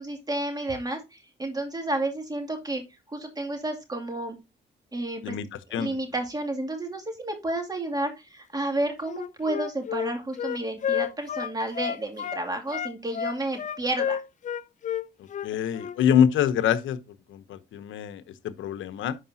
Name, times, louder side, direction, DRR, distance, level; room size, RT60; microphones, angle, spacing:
voice 1, 0.0-2.8 3.1-4.4 4.9-5.4 5.7-14.2, right 2 dB, 20° right, 2.5 m, -31 dB
Wind instrument woodwind instrument, 9.0-12.4 12.7-16.0, left 9 dB, 40° left, 0.5 m, -31 dB
voice 2, 15.4-17.0 17.3-19.2, left 8 dB, 75° left, 0.9 m, -25 dB
11.5 x 4.9 x 2.7 m
cardioid pair, 90°, 20 cm